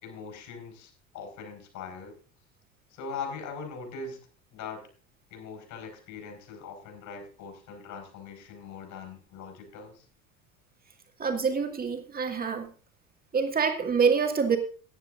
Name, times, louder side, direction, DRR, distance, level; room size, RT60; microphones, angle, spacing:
voice 1, 0.0-2.2 2.9-4.2 4.5-4.8 5.3-10.0, left 5 dB, 50° left, 2 dB, 4.8 m, -41 dB
voice 2, 11.2-12.7 13.3-14.6, right 5 dB, 20° right, 4 dB, 2.1 m, -26 dB
18.0 x 9.9 x 2.5 m, 0.38 s
figure-of-eight pair, 70°, 42 cm